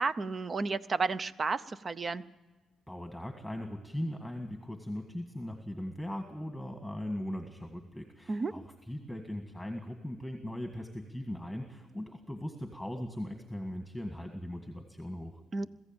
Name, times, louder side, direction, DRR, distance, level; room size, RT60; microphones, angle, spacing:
voice 1, 0.0-2.2 8.3-8.5 15.5-15.7, right 4 dB, 35° right, 15 dB, 0.7 m, -32 dB
voice 2, 2.9-15.4, left 1 dB, ahead, 4 dB, 1.8 m, -39 dB
21.5 x 15.0 x 8.9 m, 1.3 s
cardioid pair, 90°, 0 cm